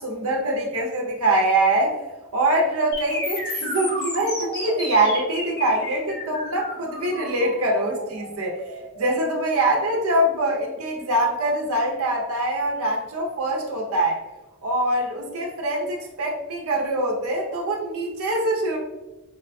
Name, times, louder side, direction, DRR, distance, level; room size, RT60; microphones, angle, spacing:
voice 1, 0.0-2.0 2.3-8.6 9.0-14.2 14.6-18.8, right 1 dB, 85° right, 0 dB, 0.6 m, -23 dB
sound 1, 2.9-10.9, left 1 dB, 45° left, 1.1 m, -33 dB
4.0 x 2.5 x 2.2 m, 1.1 s
head